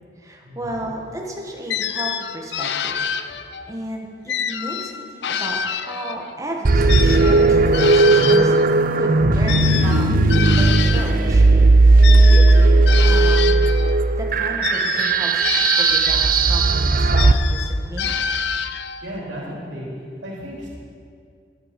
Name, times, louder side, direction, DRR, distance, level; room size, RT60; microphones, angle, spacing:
voice 1, 0.2-3.0 3.2-3.4 3.7-11.5 12.0-13.7 14.2-18.2, right 1 dB, 20° right, 0 dB, 1.7 m, -32 dB
sound 1, 1.7-3.7 4.3-6.4 6.9-11.2 12.0-14.0 14.6-16.6 17.2-19.1, left 7 dB, 65° left, 0.5 m, -27 dB
sound 2, 6.6-17.3, right 3 dB, 50° right, 0.6 m, -15 dB
voice 2, 19.0-19.9 20.2-20.7, equal, 75° right, -4 dB, 3.5 m, -33 dB
12.0 x 11.0 x 6.0 m, 2.3 s
head